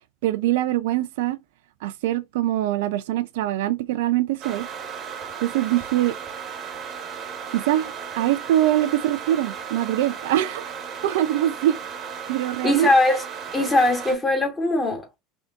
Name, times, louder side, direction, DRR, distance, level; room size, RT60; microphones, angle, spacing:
voice 1, 0.2-1.4 1.8-4.7 5.4-6.1 7.5-10.7 11.0-11.8 12.3-12.9, right 13 dB, 65° right, 0.3 m, -23 dB
sound 1, 4.4-14.2, right 7 dB, 35° right, 0.9 m, -35 dB
voice 2, 12.6-13.2 13.5-15.2, left 2 dB, 20° left, 1.4 m, -20 dB
3.6 x 3.4 x 2.5 m
figure-of-eight pair, 75°, 0 cm